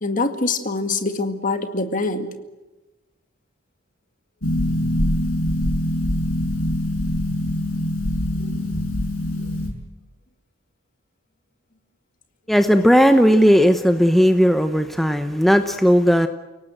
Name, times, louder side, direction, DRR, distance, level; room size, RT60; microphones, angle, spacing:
voice 1, 0.0-2.3 8.6-8.8, left 3 dB, 40° left, 7 dB, 2.1 m, -24 dB
Harp, 4.4-9.7, left 1 dB, 70° left, 6.5 m, -23 dB
voice 2, 12.5-16.3, equal, ahead, 7 dB, 0.8 m, -16 dB
29.5 x 18.0 x 8.0 m, 1.1 s
head